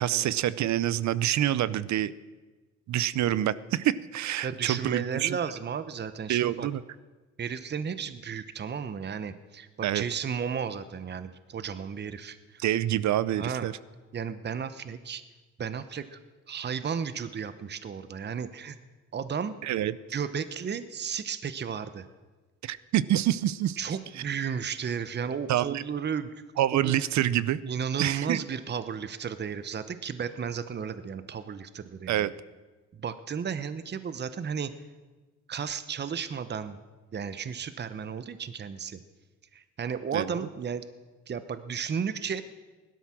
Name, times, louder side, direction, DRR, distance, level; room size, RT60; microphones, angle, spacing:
voice 1, 0.0-2.1 2.9-5.4 6.3-6.8 9.8-10.0 12.6-13.7 19.6-19.9 22.6-23.8 25.5-25.8 26.6-27.6 28.0-28.4 32.1-32.3 40.1-40.3, right 12 dB, 65° right, 18 dB, 0.7 m, -26 dB
voice 2, 4.4-6.7 7.4-12.8 13.3-13.7 14.1-15.2 15.6-16.2 16.5-18.8 19.1-19.5 20.1-22.0 23.8-26.3 26.7-26.9 27.6-32.3 33.0-34.7 35.5-36.8 37.1-39.0 39.5-40.8 41.3-42.4, right 7 dB, 35° right, 13 dB, 0.9 m, -34 dB
17.0 x 12.0 x 6.2 m, 1.3 s
cardioid pair, 90°, 30 cm